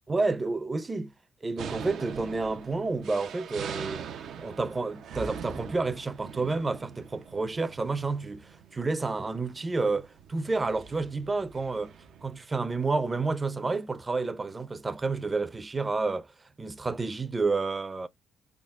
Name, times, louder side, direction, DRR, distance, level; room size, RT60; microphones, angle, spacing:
voice 1, 0.1-1.1 1.4-4.0 4.4-11.9 12.2-16.3 16.6-18.1, right 3 dB, 25° right, 0.6 m, -30 dB
sound 1, 1.6-12.3, right 7 dB, 70° right, 0.6 m, -43 dB
3.6 x 2.0 x 3.5 m
cardioid pair, 90°, 0 cm